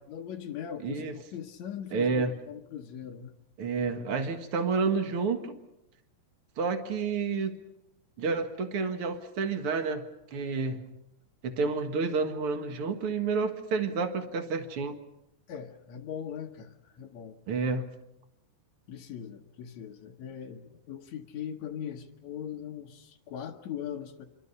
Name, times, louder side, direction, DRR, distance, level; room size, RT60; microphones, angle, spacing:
voice 1, 0.1-3.3 15.5-17.4 18.9-24.3, left 9 dB, 85° left, 2 dB, 1.5 m, -40 dB
voice 2, 0.8-1.1 1.9-2.3 3.6-5.5 6.6-7.6 8.2-10.0 10.3-10.8 11.4-15.0 17.5-17.8, right 4 dB, 60° right, 7 dB, 1.5 m, -29 dB
28.0 x 24.0 x 5.6 m, 0.87 s
omnidirectional pair, 5.0 m